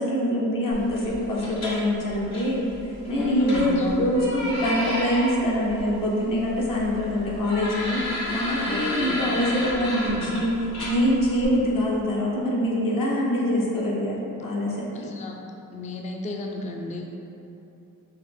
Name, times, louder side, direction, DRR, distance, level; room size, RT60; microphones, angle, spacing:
voice 1, 0.0-2.6 3.1-3.7 4.0-10.5 10.8-15.0, equal, 65° left, -5 dB, 0.8 m, -24 dB
sound 1, 0.7-11.5, left 1 dB, 90° left, 1.0 m, -33 dB
voice 2, 3.2-4.1 8.6-9.3 10.0-10.3 14.9-15.4 15.7-17.0, left 2 dB, 20° left, 1 dB, 0.4 m, -30 dB
5.4 x 2.0 x 3.4 m, 2.9 s
cardioid pair, 70°, 36 cm